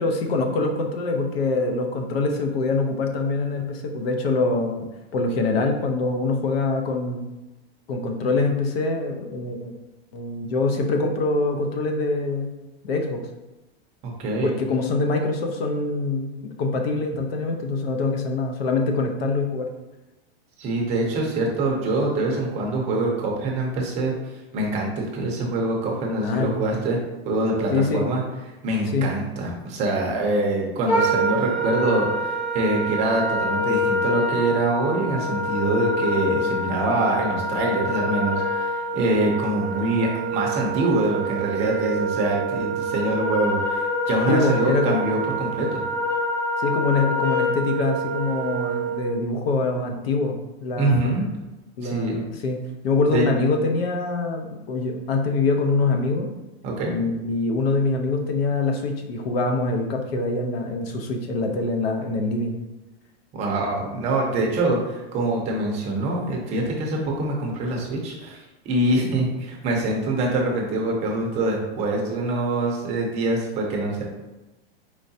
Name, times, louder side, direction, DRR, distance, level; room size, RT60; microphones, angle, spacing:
voice 1, 0.0-4.9 5.1-7.3 7.9-9.7 10.1-12.5 12.8-13.2 14.4-19.7 26.2-26.8 27.7-28.1 28.9-29.1 44.3-45.0 46.6-51.2 51.8-52.6 52.8-56.3 56.9-62.6, left 3 dB, 65° left, 4 dB, 0.8 m, -24 dB
voice 2, 14.0-14.6 20.6-24.1 24.5-27.0 27.3-28.2 28.6-45.8 50.8-51.2 51.8-52.2 53.1-53.3 56.6-56.9 63.3-74.0, right 2 dB, 20° right, -1 dB, 0.6 m, -24 dB
Wind instrument woodwind instrument, 30.9-49.0, equal, 15° left, 1.0 m, -26 dB
4.7 x 3.2 x 2.7 m, 1.0 s
supercardioid pair, 160°, 33 cm